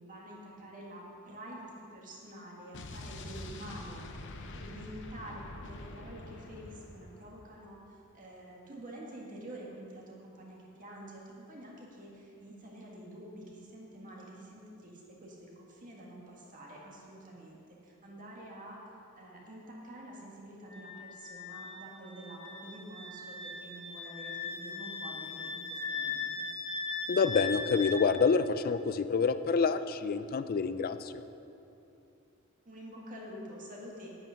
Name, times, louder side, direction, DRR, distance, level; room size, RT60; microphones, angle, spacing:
voice 1, 0.0-4.0 4.4-18.8 19.2-26.5 32.7-34.1, right 1 dB, 40° right, -3 dB, 1.8 m, -48 dB
Explosion, 2.7-7.5, left 2 dB, 60° left, 0.8 m, -45 dB
Wind instrument woodwind instrument, 20.7-27.9, left 4 dB, 5° left, 1.9 m, -39 dB
voice 2, 27.1-31.2, left 5 dB, 45° left, 11 dB, 0.4 m, -28 dB
8.9 x 8.9 x 5.8 m, 2.8 s
head